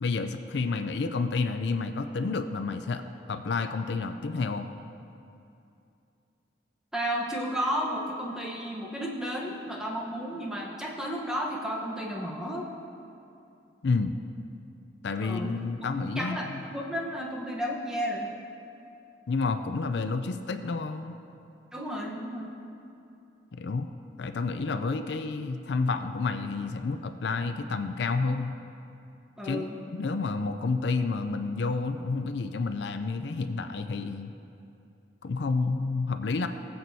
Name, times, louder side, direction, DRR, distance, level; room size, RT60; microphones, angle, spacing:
voice 1, 0.0-3.0 3.3-4.7 13.8-14.2 15.0-16.7 19.3-21.2 23.5-23.9 24.2-28.5 29.4-29.6 29.9-34.3 35.2-36.5, left 4 dB, 65° left, 8 dB, 0.4 m, -30 dB
voice 2, 6.9-12.7 15.2-15.6 16.1-18.3 21.7-22.5 29.4-29.8, equal, 5° right, -2 dB, 1.0 m, -32 dB
20.0 x 7.9 x 2.7 m, 2.7 s
head